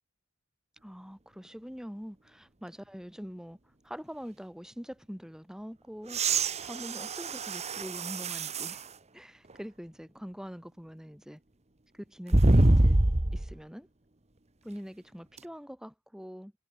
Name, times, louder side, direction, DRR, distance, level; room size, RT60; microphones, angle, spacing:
voice 1, 0.8-3.6 3.8-6.2 6.6-8.9 9.1-11.4 11.9-13.0 13.3-13.9 14.6-16.5, equal, 5° right, 2.9 m, -44 dB
sound 1, 6.1-8.8 9.5-9.6 12.3-13.5 15.4-15.5, right 2 dB, 30° right, 1.4 m, -25 dB
head